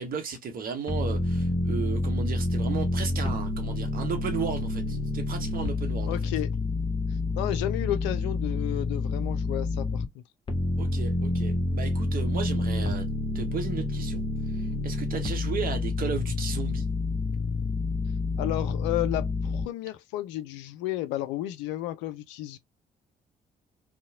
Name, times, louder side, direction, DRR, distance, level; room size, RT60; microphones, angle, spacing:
voice 1, 0.0-6.2 10.8-13.1 13.3-14.2 14.5-16.9, right 5 dB, 45° right, 0.9 m, -34 dB
sound 1, 0.9-10.1 10.5-19.7, left 2 dB, 25° left, 1.0 m, -28 dB
voice 2, 6.1-6.5 7.4-10.2 18.4-22.6, left 14 dB, 65° left, 0.4 m, -32 dB
2.8 x 2.1 x 2.7 m
figure-of-eight pair, 45°, 20 cm